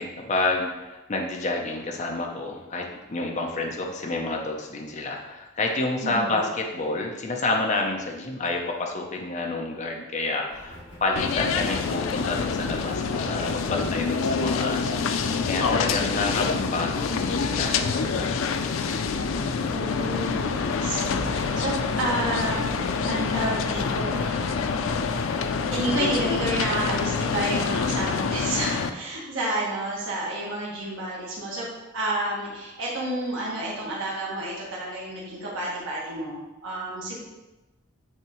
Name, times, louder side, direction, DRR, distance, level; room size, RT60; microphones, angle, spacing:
voice 1, 0.0-10.7 11.0-18.3, left 2 dB, 35° left, 1 dB, 0.6 m, -29 dB
voice 2, 6.0-6.4 19.7-24.4 25.7-31.7 31.9-37.2, right 1 dB, 75° right, -5 dB, 1.4 m, -30 dB
sound 1, 10.4-26.9, equal, 60° left, 1.8 m, -44 dB
sound 2, 11.2-28.9, left 5 dB, 85° left, 0.4 m, -26 dB
sound 3, 19.1-28.6, equal, 5° right, 0.5 m, -45 dB
8.6 x 3.6 x 3.0 m, 1.1 s
head